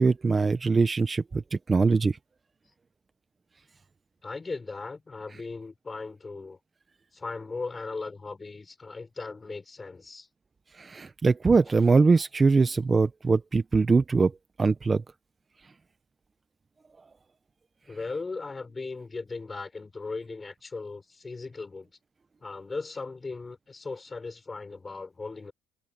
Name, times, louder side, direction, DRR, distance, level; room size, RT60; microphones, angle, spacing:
voice 1, 0.0-1.4 1.7-2.1 10.8-14.3 14.6-15.0, right 4 dB, 25° right, 1.0 m, -22 dB
voice 2, 4.2-6.6 7.1-10.3 17.8-21.9 22.4-25.5, left 3 dB, 25° left, 6.8 m, -38 dB
supercardioid pair, 80°, 0 cm